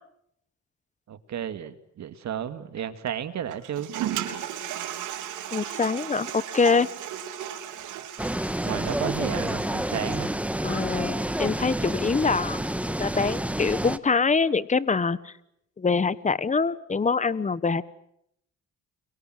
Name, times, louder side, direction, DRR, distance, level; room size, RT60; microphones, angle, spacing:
voice 1, 1.1-4.4 7.8-8.1 8.6-10.3, right 9 dB, 65° right, 10 dB, 2.3 m, -33 dB
Toilet flush, 3.5-10.4, right 11 dB, 85° right, 3.5 m, -35 dB
voice 2, 5.5-6.9 10.6-12.6 13.0-15.2 15.8-17.8, left 5 dB, 25° left, 17 dB, 1.2 m, -24 dB
sound 1, 8.2-14.0, right 1 dB, 5° right, 1.4 m, -29 dB
30.0 x 23.5 x 7.8 m, 0.76 s
cardioid pair, 90°, 30 cm